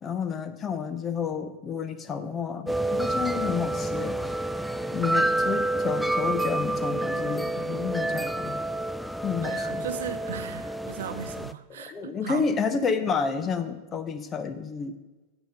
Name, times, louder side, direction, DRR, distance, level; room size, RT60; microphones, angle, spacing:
voice 1, 0.0-4.2 4.9-8.6 9.2-9.9 11.8-15.0, left 6 dB, 25° left, 10 dB, 0.8 m, -30 dB
sound 1, 2.7-11.5, right 1 dB, ahead, 0.4 m, -28 dB
voice 2, 9.4-12.4, right 8 dB, 60° right, 11 dB, 0.6 m, -37 dB
9.2 x 8.0 x 5.1 m, 1.2 s
figure-of-eight pair, 90°, 0 cm